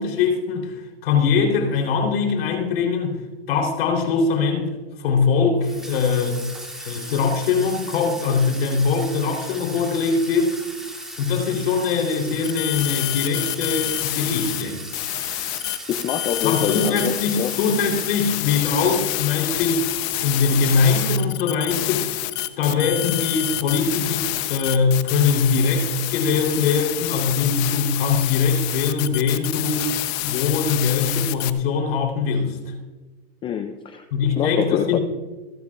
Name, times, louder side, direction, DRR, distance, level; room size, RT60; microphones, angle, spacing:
voice 1, 0.0-3.2 3.5-6.4 6.8-10.6 11.2-14.8 16.4-20.0 20.2-22.1 22.6-29.9 30.2-32.7 34.1-35.0, left 5 dB, 70° left, 2 dB, 3.8 m, -22 dB
Water tap faucet / Sink (filling or washing), 5.6-18.8, right 1 dB, ahead, 2.4 m, -37 dB
sound 1, 12.4-14.6 14.9-31.5, left 18 dB, 40° left, 0.9 m, -27 dB
voice 2, 15.9-17.6 33.4-35.0, left 9 dB, 15° left, 9 dB, 0.4 m, -26 dB
28.5 x 10.0 x 2.5 m, 1.2 s
supercardioid pair, 145°, 31 cm